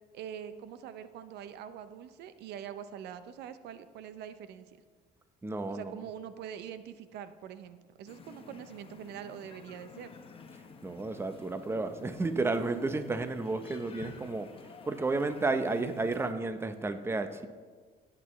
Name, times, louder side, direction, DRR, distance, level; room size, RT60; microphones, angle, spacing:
voice 1, 0.1-4.7 5.7-10.1, right 9 dB, 80° right, 12 dB, 0.6 m, -44 dB
voice 2, 5.4-5.9 10.8-14.5 14.8-17.5, right 3 dB, 15° right, 9 dB, 0.7 m, -32 dB
sound 1, 8.1-16.3, left 4 dB, 35° left, 1.0 m, -51 dB
16.5 x 8.3 x 3.1 m, 1.5 s
cardioid pair, 110°, 17 cm